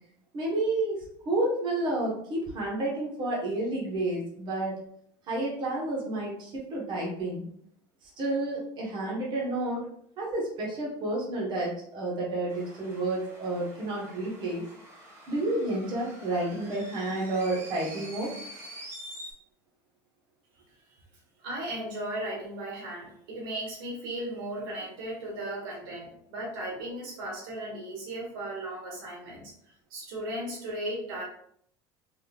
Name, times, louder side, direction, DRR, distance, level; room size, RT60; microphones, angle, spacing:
voice 1, 0.3-4.8 5.3-7.5 8.0-9.8 10.2-14.6 15.3-18.3, right 2 dB, 40° right, -3 dB, 1.3 m, -30 dB
sound 1, 12.5-19.3, right 1 dB, 25° right, 1.3 m, -46 dB
voice 2, 21.4-29.5 29.9-31.2, right 1 dB, 85° right, -2 dB, 1.3 m, -36 dB
3.6 x 3.3 x 2.4 m, 0.66 s
supercardioid pair, 125°, 11 cm